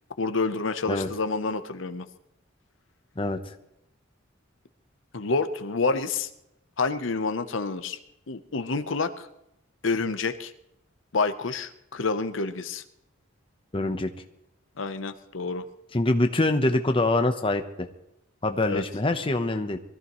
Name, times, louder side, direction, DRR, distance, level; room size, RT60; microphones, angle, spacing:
voice 1, 0.2-2.1 5.1-6.3 6.8-8.0 8.3-9.3 9.8-10.5 11.1-12.8 14.8-15.6 18.7-18.8, left 4 dB, 75° left, 9 dB, 0.8 m, -28 dB
voice 2, 13.7-14.1 15.9-17.6 18.4-19.8, left 2 dB, 25° left, 6 dB, 0.8 m, -24 dB
22.5 x 14.0 x 3.1 m, 0.84 s
head